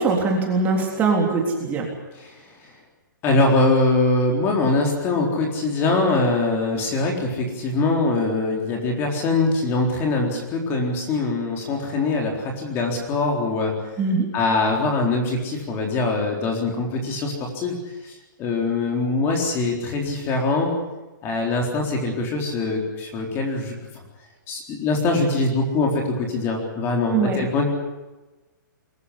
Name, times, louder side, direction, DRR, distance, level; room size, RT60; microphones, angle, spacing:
voice 1, 0.0-1.9 14.0-14.3 27.1-27.4, right 4 dB, 15° right, 0 dB, 3.6 m, -21 dB
voice 2, 2.1-2.5 3.2-13.7 14.3-17.8 18.0-20.7 21.2-23.8 24.5-27.7, left 3 dB, 20° left, 1 dB, 3.9 m, -23 dB
23.5 x 14.5 x 9.8 m, 1.1 s
hypercardioid pair, 160°, 11 cm